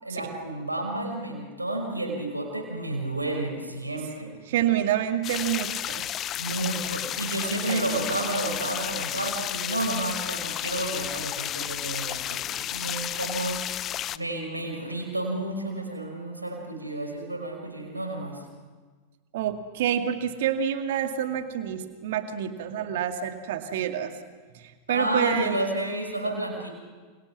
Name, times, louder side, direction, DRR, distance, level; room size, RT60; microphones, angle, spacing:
voice 1, 0.0-4.3 6.4-13.6 14.1-18.4 24.9-26.7, right 1 dB, 85° right, 1 dB, 5.6 m, -31 dB
voice 2, 4.5-6.1 7.4-8.0 19.3-24.2 24.5-25.6, right 9 dB, 55° right, 7 dB, 2.3 m, -28 dB
sound 1, 5.2-14.2, left 11 dB, 30° left, 0.7 m, -32 dB
29.5 x 28.0 x 6.2 m, 1.5 s
figure-of-eight pair, 90°, 0 cm